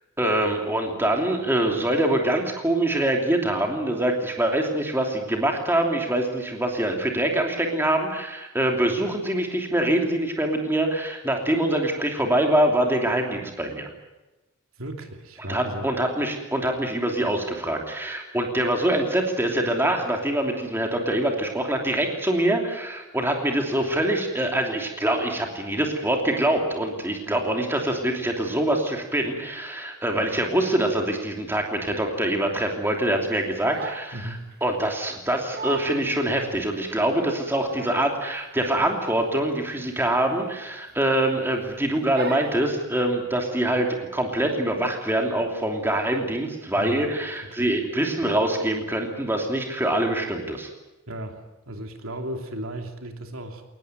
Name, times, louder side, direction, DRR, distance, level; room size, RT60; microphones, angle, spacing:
voice 1, 0.2-13.9 15.5-34.3 34.6-50.7, right 1 dB, 10° right, 2 dB, 3.0 m, -24 dB
voice 2, 14.8-15.9 34.1-34.5 46.7-47.1 47.4-47.7 51.1-53.6, right 1 dB, 70° right, 4 dB, 2.9 m, -35 dB
Crying sobbing, 33.3-34.2 34.5-34.7 35.2-35.3 35.5-36.0 36.5-36.6 37.4-38.2 38.5-38.8 39.1-39.2 39.6-39.8 40.5-41.1 41.5-41.7 42.1-42.6, right 4 dB, 45° right, 1.3 m, -37 dB
22.0 x 19.5 x 9.1 m, 1.1 s
head